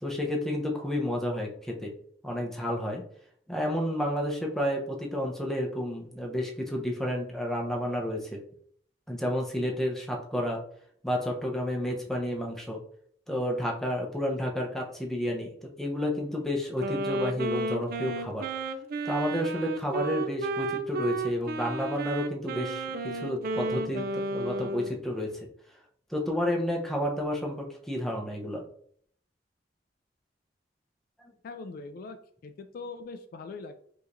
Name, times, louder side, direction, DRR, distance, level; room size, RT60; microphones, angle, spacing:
voice 1, 0.0-1.9 2.2-3.0 3.5-8.4 9.1-10.6 11.0-12.8 13.3-15.5 15.8-18.5 19.0-25.3 26.1-28.6, equal, ahead, 0 dB, 0.7 m, -31 dB
Wind instrument woodwind instrument, 16.8-25.0, right 2 dB, 55° right, 0.4 m, -33 dB
voice 2, 31.4-32.2 32.4-33.7, left 4 dB, 55° left, 8 dB, 0.3 m, -41 dB
4.9 x 2.9 x 2.6 m, 0.62 s
head